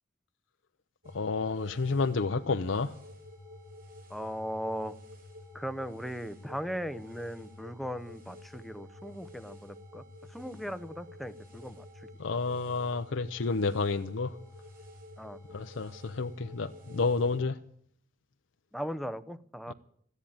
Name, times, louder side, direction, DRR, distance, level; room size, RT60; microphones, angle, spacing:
sound 1, 1.0-17.4, left 1 dB, 50° right, 5.4 m, -50 dB
voice 1, 1.1-2.9 12.2-14.3 15.5-17.6, left 4 dB, 70° left, 0.6 m, -30 dB
voice 2, 4.1-5.0 5.5-10.0 10.3-12.1 15.2-15.4 18.7-19.7, equal, ahead, 0.7 m, -38 dB
13.5 x 9.9 x 8.7 m
head